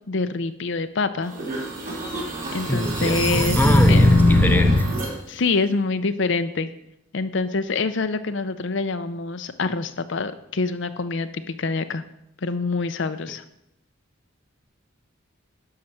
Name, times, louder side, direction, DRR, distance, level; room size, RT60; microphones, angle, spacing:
voice 1, 0.0-1.3 2.5-3.6 3.9-4.2 5.3-6.7 7.1-12.0 12.4-13.4, left 3 dB, 65° left, 10 dB, 0.7 m, -26 dB
sound 1, 1.3-5.1, left 1 dB, 45° right, 3.2 m, -19 dB
voice 2, 2.7-4.9, left 1 dB, 10° left, 6 dB, 0.8 m, -25 dB
11.5 x 5.7 x 7.8 m, 0.80 s
head